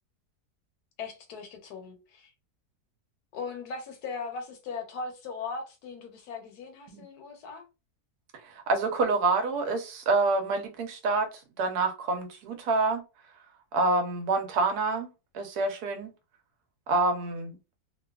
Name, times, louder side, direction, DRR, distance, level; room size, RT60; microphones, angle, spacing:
voice 1, 1.0-2.3 3.3-7.6, left 4 dB, 80° left, 1.2 m, -39 dB
voice 2, 8.4-11.3 11.6-13.0 13.7-15.1 15.3-16.1 16.9-17.6, right 3 dB, 80° right, 1.2 m, -27 dB
2.9 x 2.2 x 2.3 m
omnidirectional pair, 1.6 m